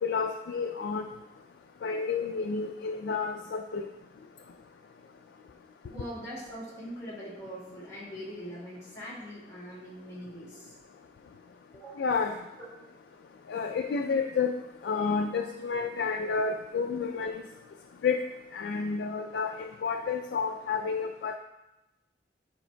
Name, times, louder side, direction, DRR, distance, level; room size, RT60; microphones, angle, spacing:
voice 1, 0.0-1.1 1.8-3.9 12.0-12.4 13.5-14.5 14.8-17.4 18.0-18.2 18.5-21.4, left 5 dB, 70° left, 4 dB, 0.3 m, -30 dB
voice 2, 5.9-10.8 11.7-12.1 12.6-12.7, equal, 20° left, -7 dB, 1.9 m, -42 dB
9.7 x 4.5 x 2.2 m, 0.97 s
head